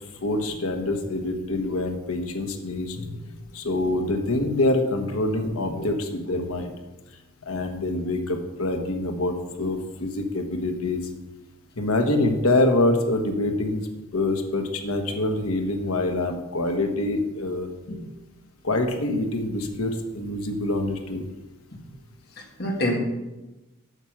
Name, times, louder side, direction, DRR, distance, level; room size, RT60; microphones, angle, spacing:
voice 1, 0.2-3.0 3.5-6.7 7.4-11.0 11.8-13.9 14.1-17.7 18.6-21.3, left 2 dB, 85° left, 4 dB, 1.3 m, -25 dB
voice 2, 2.9-3.6 5.7-5.9 17.9-18.0 21.7-21.8 22.4-23.0, equal, 45° left, 1 dB, 1.7 m, -30 dB
8.0 x 5.9 x 6.5 m, 1.1 s
head